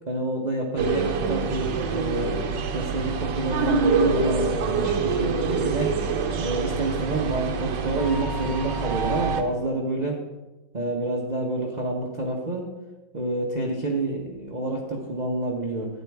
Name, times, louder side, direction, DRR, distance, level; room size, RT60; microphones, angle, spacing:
voice 1, 0.1-2.3 2.7-5.9 6.3-10.2 10.7-12.7 13.1-15.9, right 2 dB, 35° right, 0 dB, 0.7 m, -28 dB
sound 1, 0.8-9.4, right 5 dB, 65° right, 1.4 m, -26 dB
12.0 x 9.2 x 3.6 m, 1.1 s
omnidirectional pair, 2.3 m